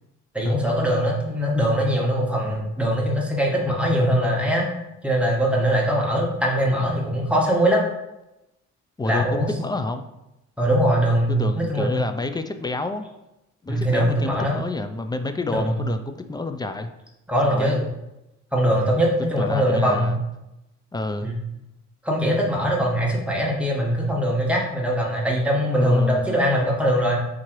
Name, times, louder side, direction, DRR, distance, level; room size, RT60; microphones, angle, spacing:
voice 1, 0.3-4.7 5.0-7.8 9.0-9.5 10.6-12.0 13.7-14.6 15.5-15.8 17.3-17.8 18.5-20.2 21.2-21.3 22.0-27.2, equal, 5° right, -2 dB, 1.2 m, -21 dB
voice 2, 9.0-10.0 11.3-13.1 13.6-16.9 17.5-17.8 19.4-20.2 20.9-21.3 25.8-26.4, left 2 dB, 15° left, 8 dB, 0.3 m, -29 dB
3.7 x 3.0 x 4.5 m, 0.91 s
cardioid pair, 90°, 30 cm